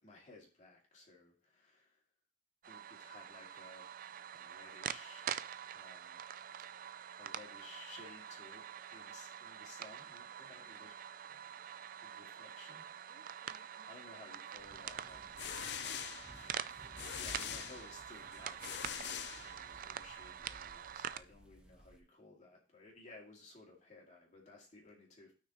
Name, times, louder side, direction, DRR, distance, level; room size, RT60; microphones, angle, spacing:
voice 1, 0.0-2.0 2.7-5.3 5.7-6.3 7.2-11.0 11.3-11.4 12.0-13.2 13.9-15.2 17.0-25.3, left 2 dB, 40° left, -2 dB, 2.5 m, -57 dB
sound 1, 2.6-21.2, right 9 dB, 50° right, 0.4 m, -46 dB
voice 2, 13.1-15.8 16.8-17.2, right 1 dB, 65° right, -4 dB, 3.4 m, -67 dB
sound 2, 14.6-22.0, equal, 5° right, 1.0 m, -59 dB
sound 3, 15.1-20.0, left 10 dB, 65° left, 0.5 m, -44 dB
12.5 x 6.1 x 3.0 m, 0.37 s
head